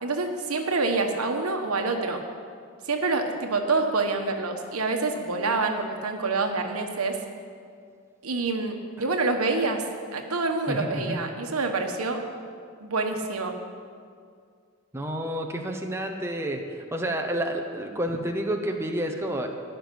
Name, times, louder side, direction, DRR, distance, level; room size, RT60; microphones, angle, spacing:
voice 1, 0.0-2.2 2.9-7.1 8.2-9.8 10.1-12.2 12.8-13.5, right 3 dB, 90° right, 4 dB, 1.3 m, -27 dB
voice 2, 10.7-11.2 14.9-19.5, right 1 dB, 10° right, 3 dB, 0.8 m, -30 dB
12.0 x 6.7 x 9.8 m, 2.2 s
head